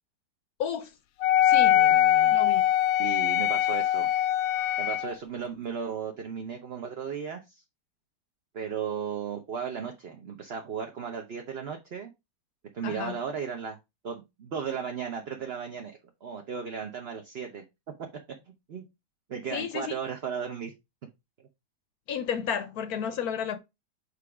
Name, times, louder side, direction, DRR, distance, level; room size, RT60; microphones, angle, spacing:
voice 1, 0.6-0.9 1.4-1.9 2.3-2.6 12.8-13.1 19.5-19.9 22.1-23.6, left 8 dB, 65° left, 1.0 m, -32 dB
Wind instrument woodwind instrument, 1.2-5.1, left 12 dB, 90° left, 1.3 m, -22 dB
voice 2, 1.7-2.4 3.0-4.1 4.8-7.4 8.5-12.1 12.7-13.8 14.0-17.6 18.7-18.8 19.3-20.7, right 7 dB, 45° right, 0.8 m, -35 dB
6.9 x 3.1 x 4.8 m
omnidirectional pair, 1.9 m